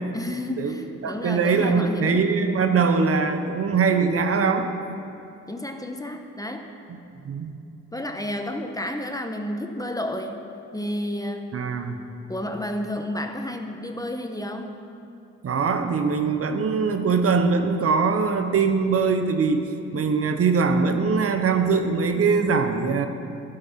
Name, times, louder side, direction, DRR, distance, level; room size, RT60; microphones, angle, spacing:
voice 1, 0.1-2.3 5.5-6.7 7.9-10.4 10.7-11.6 12.3-14.8, left 1 dB, 10° left, 5 dB, 1.0 m, -31 dB
voice 2, 1.0-4.7 7.2-7.5 11.5-12.0 15.4-23.1, right 5 dB, 50° right, 7 dB, 1.0 m, -22 dB
12.0 x 10.5 x 5.8 m, 2.7 s
cardioid pair, 90°, 30 cm